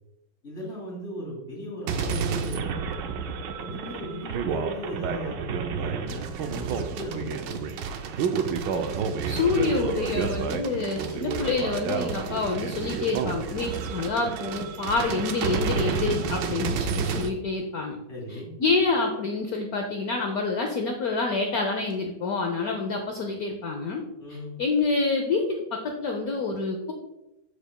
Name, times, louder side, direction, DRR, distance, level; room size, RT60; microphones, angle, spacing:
voice 1, 0.4-2.8 3.6-7.8 18.1-18.5 24.2-24.5, equal, 35° left, -5 dB, 2.9 m, -37 dB
sound 1, 1.9-17.3, right 6 dB, 75° right, 1.2 m, -30 dB
voice 2, 9.2-18.0 18.3-24.0 24.3-26.9, left 3 dB, 65° left, 3 dB, 0.9 m, -27 dB
12.0 x 5.0 x 2.2 m, 0.96 s
omnidirectional pair, 2.1 m